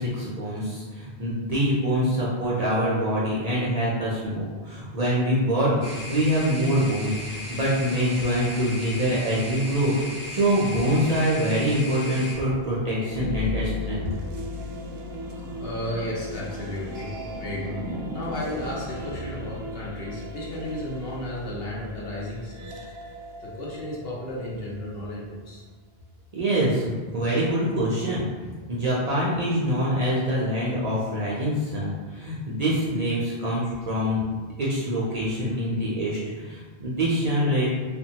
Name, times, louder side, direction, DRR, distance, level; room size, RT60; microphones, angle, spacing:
voice 1, 0.0-14.1 26.3-28.3 28.7-37.7, equal, 50° right, -6 dB, 0.5 m, -25 dB
sound 1, 5.8-12.3, left 1 dB, 15° left, 0.7 m, -37 dB
sound 2, 13.0-24.9, left 2 dB, 80° right, 0.8 m, -36 dB
voice 2, 15.3-17.1 17.4-22.7 23.4-25.6 35.2-35.3, left 1 dB, 70° left, -5 dB, 0.9 m, -34 dB
2.9 x 2.1 x 2.8 m, 1.4 s
omnidirectional pair, 1.1 m